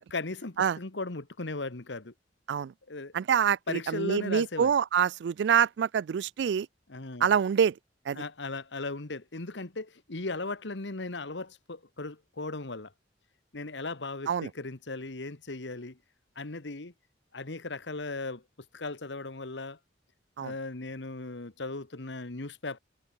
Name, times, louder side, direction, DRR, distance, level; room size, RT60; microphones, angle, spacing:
voice 1, 0.0-2.1 2.9-3.1 3.7-4.7 6.9-7.3 8.1-12.9 13.5-16.0 16.3-16.9 17.3-18.4 18.7-19.8 20.4-22.8, left 3 dB, 75° left, 1.5 m, -37 dB
voice 2, 3.1-6.7 7.2-7.7 8.1-8.2 14.3-14.5 20.4-20.5, right 8 dB, 65° right, 0.3 m, -26 dB
head